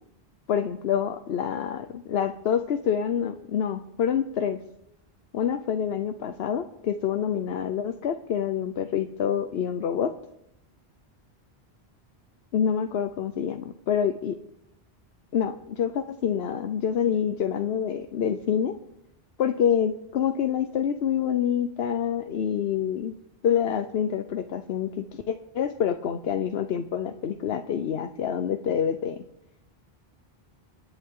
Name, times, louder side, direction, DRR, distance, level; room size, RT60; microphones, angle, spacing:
voice 1, 0.5-4.6 5.3-10.1 12.5-14.4 15.3-18.8 19.4-23.1 23.4-29.2, left 8 dB, 80° left, 9 dB, 1.0 m, -27 dB
27.5 x 11.0 x 3.7 m, 0.81 s
omnidirectional pair, 1.0 m